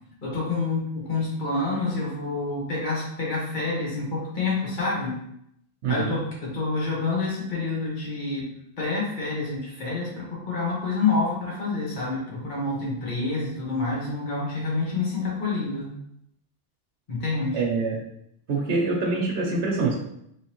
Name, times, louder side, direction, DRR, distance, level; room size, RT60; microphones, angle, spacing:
voice 1, 0.2-5.1 5.9-8.5 8.8-15.9 17.1-17.6, left 3 dB, 50° left, -5 dB, 1.3 m, -28 dB
voice 2, 5.8-6.1 17.5-18.0 18.5-19.9, right 3 dB, 80° right, -2 dB, 1.0 m, -25 dB
3.5 x 3.0 x 2.9 m, 0.75 s
omnidirectional pair, 1.1 m